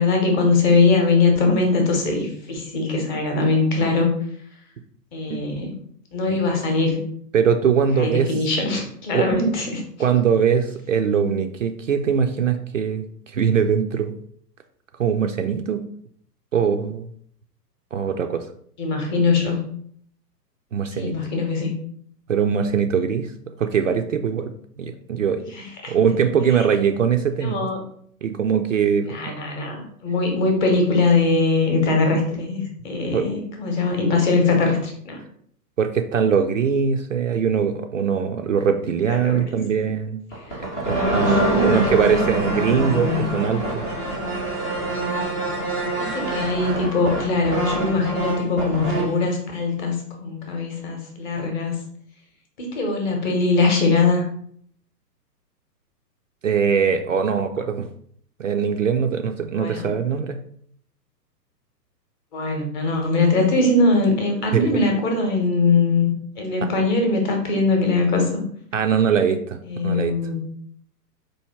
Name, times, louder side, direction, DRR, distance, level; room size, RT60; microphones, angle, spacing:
voice 1, 0.0-4.1 5.1-5.7 6.1-7.1 8.0-9.8 18.8-19.6 21.0-21.7 25.5-25.9 27.4-27.8 29.1-35.2 39.1-39.6 40.9-43.3 46.0-51.8 52.6-54.3 59.5-59.9 62.3-68.4 69.7-70.4, left 3 dB, 25° left, 2 dB, 1.0 m, -21 dB
voice 2, 7.3-8.4 9.1-9.5 10.0-14.1 15.0-15.8 16.5-17.1 17.9-18.4 20.7-21.2 22.3-23.3 23.6-24.5 24.8-25.4 25.9-27.7 28.2-29.3 33.1-33.3 35.8-40.2 40.6-43.9 56.4-57.9 58.4-60.4 64.5-64.7 66.6-66.7 68.7-70.1, right 7 dB, 50° right, 6 dB, 0.5 m, -22 dB
sound 1, 40.3-49.2, right 1 dB, 10° left, 0.4 m, -25 dB
4.6 x 2.7 x 4.2 m, 0.63 s
figure-of-eight pair, 115°, 50 cm